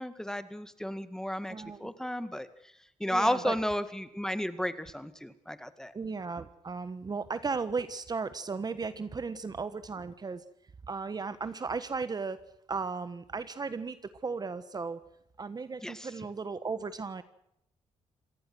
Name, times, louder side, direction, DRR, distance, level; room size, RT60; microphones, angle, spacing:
voice 1, 0.0-1.5 1.8-2.5 3.0-5.9 15.8-16.1, equal, 5° left, 12 dB, 1.9 m, -33 dB
voice 2, 1.5-1.9 3.1-3.6 5.9-10.4 10.9-12.4 12.7-14.0 14.2-15.0 15.4-17.2, right 4 dB, 35° right, 13 dB, 1.3 m, -35 dB
27.0 x 18.5 x 6.3 m, 0.78 s
cardioid pair, 85°, 12 cm